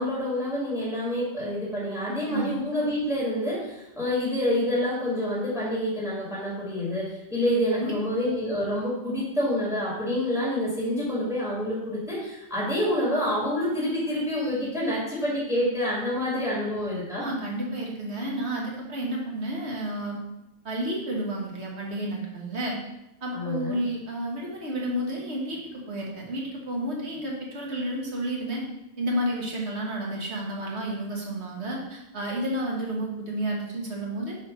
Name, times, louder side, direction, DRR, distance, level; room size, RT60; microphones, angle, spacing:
voice 1, 0.0-17.2 23.3-23.8, left 1 dB, 5° right, -7 dB, 1.8 m, -27 dB
voice 2, 17.2-20.2 20.6-22.8 23.2-28.6 29.0-34.4, right 1 dB, 80° right, -2 dB, 1.6 m, -31 dB
6.2 x 3.2 x 5.3 m, 0.90 s
omnidirectional pair, 1.1 m